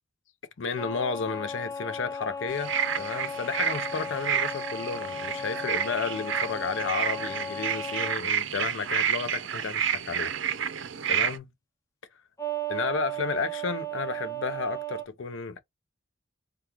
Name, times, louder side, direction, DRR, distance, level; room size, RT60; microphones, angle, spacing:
voice 1, 0.6-10.3 11.1-11.5 12.7-15.6, left 5 dB, 75° left, 0.5 m, -32 dB
sound 1, 0.8-8.2 12.4-15.0, right 1 dB, 15° left, 0.6 m, -35 dB
sound 2, 2.5-11.4, right 9 dB, 70° right, 0.5 m, -30 dB
3.5 x 2.3 x 2.9 m
head